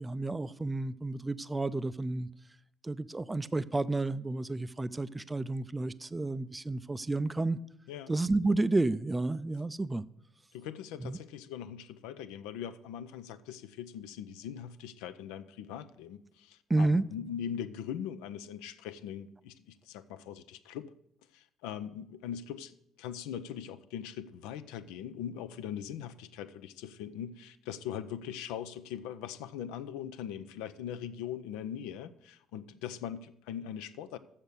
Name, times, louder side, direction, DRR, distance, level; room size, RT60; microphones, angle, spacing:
voice 1, 0.0-2.3 2.8-7.6 8.1-10.0 11.0-11.2 16.7-17.0, right 2 dB, 15° right, 0.4 m, -31 dB
voice 2, 10.5-20.9 21.3-34.2, left 9 dB, 65° left, 0.5 m, -41 dB
7.2 x 6.5 x 7.9 m
figure-of-eight pair, 50°, 0 cm